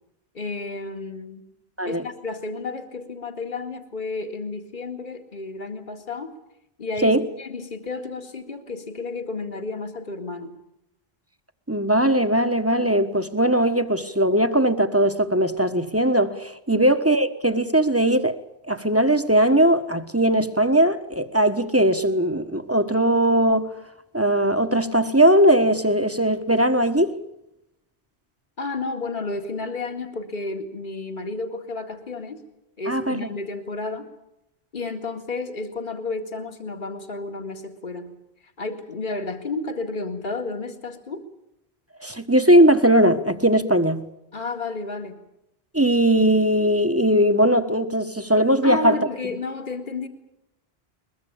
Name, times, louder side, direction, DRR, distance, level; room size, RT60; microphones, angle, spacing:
voice 1, 0.3-1.5 1.8-6.3 6.8-10.5 16.7-16.8 28.6-32.4 32.8-34.1 34.7-38.1 38.6-41.2 44.3-45.2 48.6-50.1, left 3 dB, 50° left, 2.2 m, -31 dB
voice 2, 11.7-18.3 18.7-23.7 24.1-27.1 32.9-33.3 42.0-44.1 45.7-48.9, right 1 dB, 15° right, 1.3 m, -19 dB
22.0 x 22.0 x 8.5 m
omnidirectional pair, 1.1 m